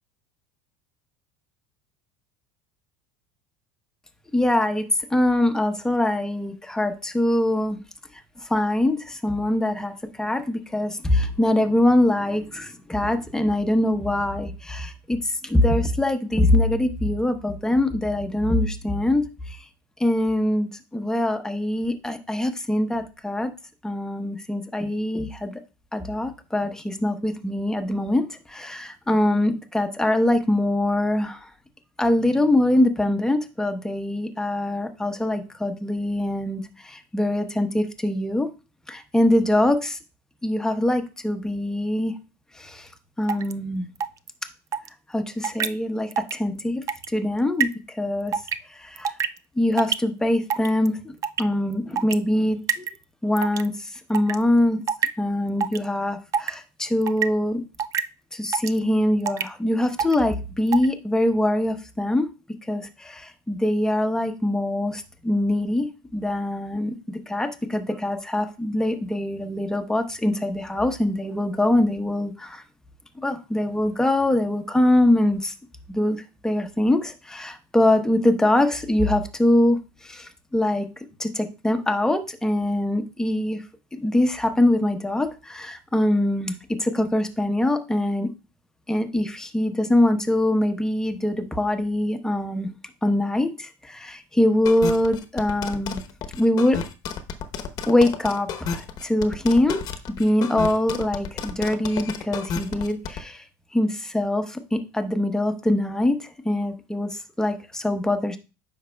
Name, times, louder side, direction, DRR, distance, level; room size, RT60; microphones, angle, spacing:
voice 1, 4.3-7.8 8.4-19.6 20.0-23.5 23.8-25.5 25.9-31.5 32.0-38.5 38.9-40.0 40.4-42.1 42.5-42.9 43.2-43.9 45.1-48.4 48.7-49.1 49.6-52.9 53.2-54.8 55.2-57.6 58.3-62.3 62.7-72.6 73.2-75.5 75.9-76.2 76.4-80.9 81.2-83.6 83.9-88.3 88.9-92.7 93.0-96.0 96.3-96.8 97.9-99.8 100.2-103.4 103.7-108.4, left 1 dB, 5° left, 6 dB, 0.9 m, -23 dB
sound 1, 43.3-43.5 44.0-44.3 44.7-44.9 45.4-45.7 46.1-46.3 46.6-47.1 47.6-47.7 48.3-48.6 49.0-49.4 49.8-49.9 50.5-50.9 51.2-51.4 52.0-52.1 52.7-53.0 53.4-53.7 54.1-54.3 54.9-55.1 55.6-55.8 56.3-56.5 57.0-57.3 57.8-58.0 58.5-58.8 59.3-59.5 60.0-60.1 60.7-60.9, right 7 dB, 35° right, 0.5 m, -24 dB
sound 2, 94.7-103.2, left 6 dB, 45° left, 0.9 m, -31 dB
9.3 x 5.8 x 2.3 m, 0.31 s
supercardioid pair, 110°, 9 cm